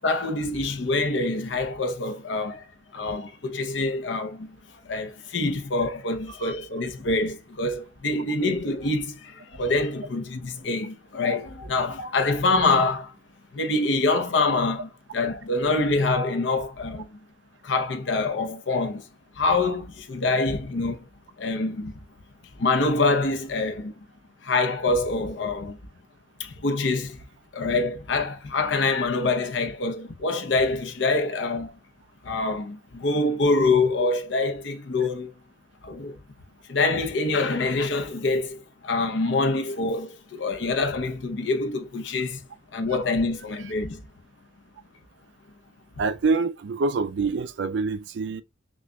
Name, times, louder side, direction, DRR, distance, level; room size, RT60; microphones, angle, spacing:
voice 1, 0.0-2.7 2.9-4.5 4.8-13.1 13.5-17.1 17.6-19.0 19.4-21.1 21.4-21.9 22.6-23.9 24.4-25.8 26.4-27.2 27.5-31.7 32.2-35.3 35.8-36.2 36.7-42.4 42.7-44.0, left 3 dB, 80° left, 0.7 m, -25 dB
voice 2, 46.0-48.4, right 4 dB, 75° right, 0.4 m, -26 dB
6.1 x 2.3 x 2.2 m
head